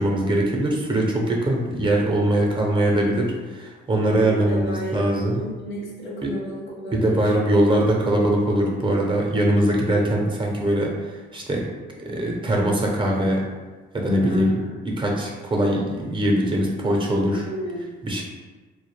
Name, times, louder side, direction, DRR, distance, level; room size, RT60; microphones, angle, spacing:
voice 1, 0.0-5.4 6.2-6.3 6.9-11.7 12.0-13.4 13.9-17.5 18.0-18.2, right 1 dB, 25° right, -1 dB, 0.5 m, -22 dB
voice 2, 4.0-7.2 14.1-14.5 17.3-17.9, right 1 dB, 75° left, -4 dB, 0.9 m, -32 dB
2.3 x 2.1 x 3.1 m, 1.3 s
cardioid pair, 90°, 20 cm